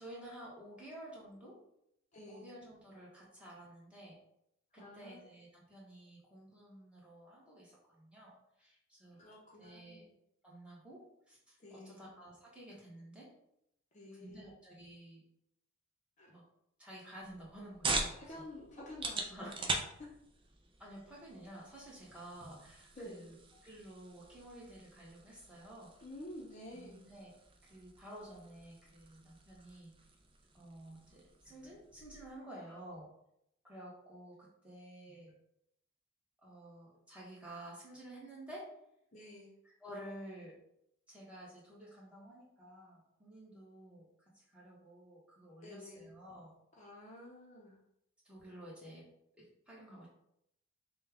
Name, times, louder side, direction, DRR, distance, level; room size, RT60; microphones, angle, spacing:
voice 1, 0.0-1.6 2.3-4.2 4.7-8.3 8.6-10.0 10.4-13.3 14.2-15.2 16.3-16.4 16.8-18.4 18.8-18.9 19.3-19.5 20.8-23.3 23.6-25.9 26.7-27.3 27.7-29.9 30.5-33.1 33.6-35.4 36.4-38.7 39.8-40.5 41.1-46.5 48.2-49.1 49.4-50.1, right 1 dB, 5° right, -6 dB, 1.3 m, -52 dB
voice 2, 2.1-2.5 4.7-5.3 9.2-10.1 11.6-12.0 13.9-14.5 16.2-16.3 18.2-20.1 23.0-23.3 26.0-27.0 32.6-32.8 39.1-39.5 45.6-46.1 46.8-47.8, left 1 dB, 35° left, -2 dB, 0.7 m, -50 dB
sound 1, 17.2-32.3, right 3 dB, 25° right, 0.5 m, -44 dB
5.5 x 2.3 x 3.5 m, 0.77 s
head